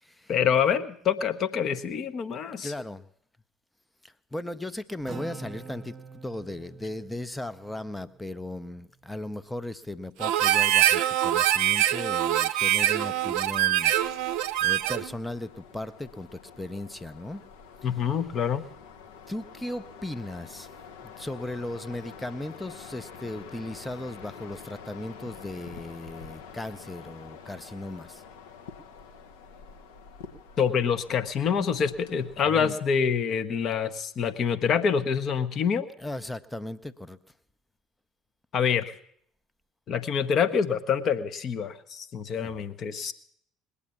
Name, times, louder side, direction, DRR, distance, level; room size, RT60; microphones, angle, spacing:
voice 1, 0.3-2.7 17.8-18.6 30.6-35.9 38.5-38.9 39.9-43.1, left 7 dB, 45° left, 9 dB, 1.0 m, -26 dB
voice 2, 2.6-3.1 4.0-6.0 6.2-13.9 14.2-17.4 17.8-17.9 19.3-20.7 21.2-28.2 32.4-32.8 36.0-37.2 42.4-42.6, left 1 dB, 5° left, 13 dB, 0.7 m, -37 dB
Acoustic guitar, 5.1-8.7, right 4 dB, 30° right, 1.0 m, -45 dB
Harmonica, 10.2-15.1, right 12 dB, 60° right, 0.5 m, -24 dB
sound 1, 13.3-32.7, left 6 dB, 65° left, 1.1 m, -47 dB
20.5 x 8.5 x 7.1 m, 0.65 s
figure-of-eight pair, 55°, 0 cm